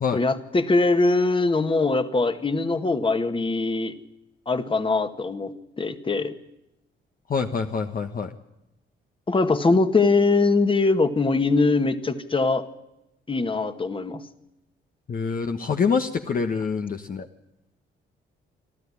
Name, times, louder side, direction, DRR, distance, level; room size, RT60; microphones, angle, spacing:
voice 1, 0.1-3.9 4.5-6.4 9.3-12.7 13.3-14.2, left 3 dB, 25° left, 9 dB, 1.8 m, -22 dB
voice 2, 7.3-8.3 15.1-17.3, left 5 dB, 45° left, 5 dB, 1.3 m, -25 dB
28.0 x 13.0 x 9.9 m, 0.89 s
cardioid pair, 90°, 20 cm